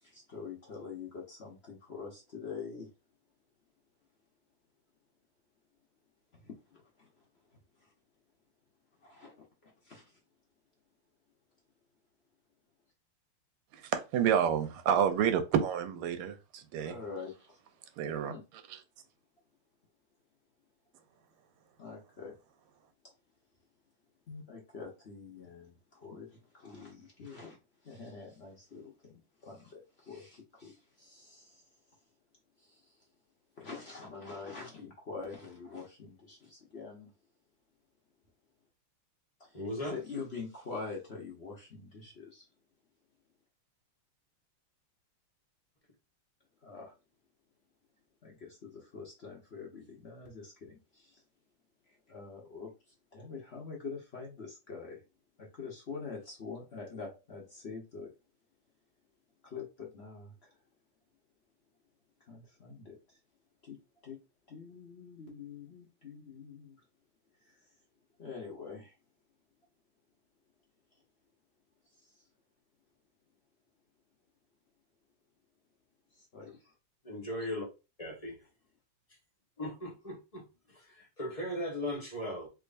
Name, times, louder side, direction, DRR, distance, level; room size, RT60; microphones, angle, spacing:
voice 1, 0.0-2.9 6.3-7.1 7.8-7.9 9.0-9.3 9.6-10.2 16.7-17.6 18.0-18.4 21.8-22.3 24.3-27.6 27.8-29.1 29.4-31.6 32.6-32.9 33.6-37.1 39.4-39.5 39.9-42.5 46.6-46.9 48.2-51.2 52.1-52.7 53.1-55.0 55.4-58.1 59.4-60.5 62.3-63.2 63.6-64.2 64.5-66.8 67.4-67.5 68.2-68.9 72.0-72.1 76.2-76.7, left 5 dB, 65° left, 0.6 m, -45 dB
voice 2, 13.9-16.9 18.0-18.3, right 8 dB, 80° right, 1.5 m, -29 dB
voice 3, 39.5-40.0 77.0-77.6 78.0-78.4 79.6-82.5, left 1 dB, 30° left, 0.7 m, -38 dB
3.6 x 3.1 x 2.5 m
omnidirectional pair, 2.4 m